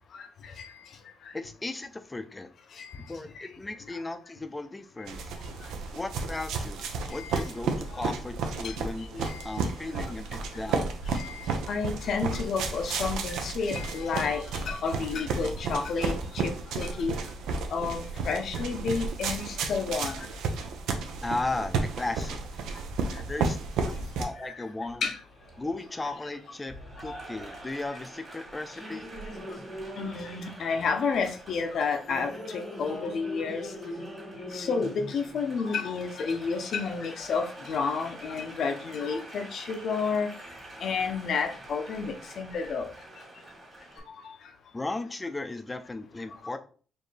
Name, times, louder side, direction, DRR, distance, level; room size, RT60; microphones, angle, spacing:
voice 1, 0.1-0.7 1.3-1.4 2.8-3.0 3.9-4.0 7.1-7.5 7.9-8.1 8.6-8.8 9.2-9.6 11.1-17.2 17.7-20.3 23.1-23.2 24.4-24.6 25.0-25.2 27.1-27.2 30.0-33.7 34.5-40.3 40.8-42.9 44.1-44.4 46.5-46.6, left 5 dB, 60° left, 6 dB, 0.7 m, -31 dB
voice 2, 1.3-2.5 3.1-5.3 5.9-6.8 7.1-10.9 21.2-22.4 23.3-25.1 25.6-29.1 44.7-46.6, left 2 dB, 20° left, 9 dB, 0.5 m, -36 dB
sound 1, 5.1-24.3, right 4 dB, 85° right, 0.6 m, -32 dB
Applause, 24.2-44.0, equal, 35° right, 1.8 m, -44 dB
4.4 x 2.7 x 3.3 m, 0.40 s
cardioid pair, 90°, 0 cm